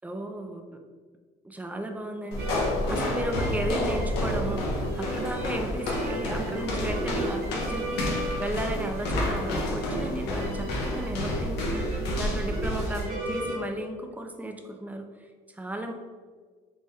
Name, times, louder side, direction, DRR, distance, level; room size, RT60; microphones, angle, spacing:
voice 1, 0.0-0.8 1.4-15.9, right 1 dB, 10° right, 5 dB, 0.3 m, -35 dB
sound 1, 2.3-13.1, left 1 dB, 90° left, 0.7 m, -30 dB
sound 2, 2.4-13.6, right 1 dB, 65° right, 0.9 m, -36 dB
3.4 x 2.1 x 4.1 m, 1.5 s
cardioid pair, 110°, 17 cm